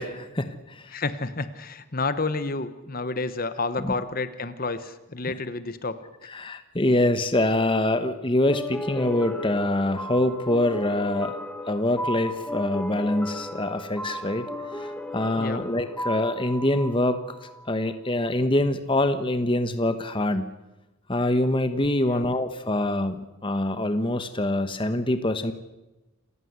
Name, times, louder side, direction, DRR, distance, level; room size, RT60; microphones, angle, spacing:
voice 1, 0.0-1.0 3.8-3.9 6.3-11.4 11.7-14.9 15.1-20.5 21.1-25.5, left 1 dB, 25° left, 9 dB, 1.1 m, -25 dB
voice 2, 0.9-6.0 15.4-15.7 22.0-22.3, left 3 dB, 40° left, 12 dB, 1.1 m, -30 dB
sound 1, 8.5-17.7, left 1 dB, 5° left, 1.3 m, -35 dB
28.5 x 15.5 x 8.1 m, 1.0 s
head